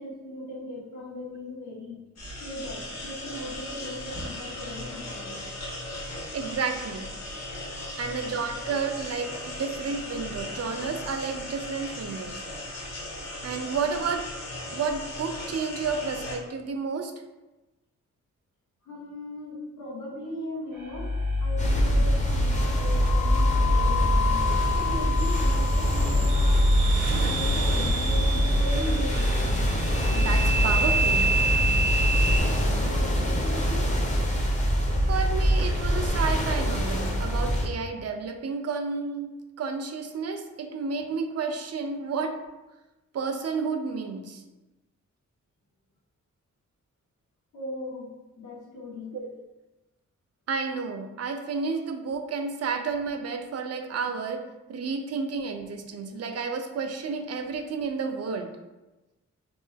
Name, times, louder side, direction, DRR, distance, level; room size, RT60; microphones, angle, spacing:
voice 1, 0.0-2.0 2.4-5.5 18.8-21.1 21.4-24.4 24.7-26.7 27.1-29.3 32.7-34.0 47.5-49.1, left 1 dB, 80° left, -5 dB, 1.4 m, -38 dB
sound 1, 2.2-16.4, left 1 dB, 60° left, 1.1 m, -37 dB
voice 2, 6.3-7.1 8.0-12.4 13.4-14.3 14.7-17.1 30.1-31.3 35.1-42.4 43.1-44.4 49.1-49.3 50.5-54.4 54.7-58.5, right 5 dB, 55° right, 6 dB, 0.4 m, -31 dB
sound 2, 20.7-32.4, left 1 dB, 85° right, 1.2 m, -27 dB
sound 3, 21.6-37.7, equal, 25° left, 0.6 m, -24 dB
4.3 x 2.9 x 3.3 m, 1.1 s
wide cardioid pair, 175°, 30 cm